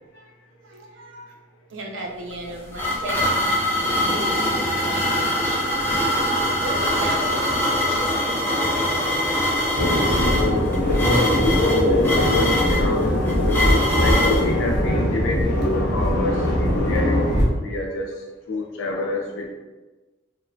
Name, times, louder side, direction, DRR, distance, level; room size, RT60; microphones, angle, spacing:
voice 1, 0.1-3.3 3.5-5.6 6.6-7.6 7.9-8.9 9.4-10.2 17.7-17.8 18.5-18.7, right 2 dB, 80° right, 0 dB, 0.5 m, -36 dB
sound 1, 2.3-14.5, left 1 dB, 10° left, 0.4 m, -23 dB
sound 2, 9.8-17.4, left 1 dB, 55° left, 0.8 m, -21 dB
voice 2, 11.1-13.2 13.9-19.5, left 2 dB, 80° left, 0 dB, 0.3 m, -27 dB
2.8 x 2.1 x 2.5 m, 1.2 s
head